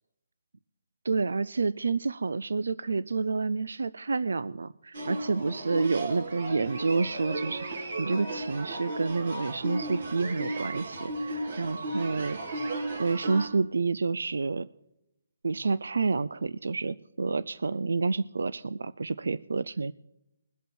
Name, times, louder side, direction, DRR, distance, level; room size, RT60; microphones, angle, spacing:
voice 1, 1.0-12.4 13.0-14.7 15.4-19.9, right 4 dB, 80° right, 17 dB, 0.4 m, -29 dB
sound 1, 4.9-13.5, right 2 dB, 60° right, 2.9 m, -35 dB
22.0 x 8.1 x 4.4 m, 0.87 s
hypercardioid pair, 160°, 0 cm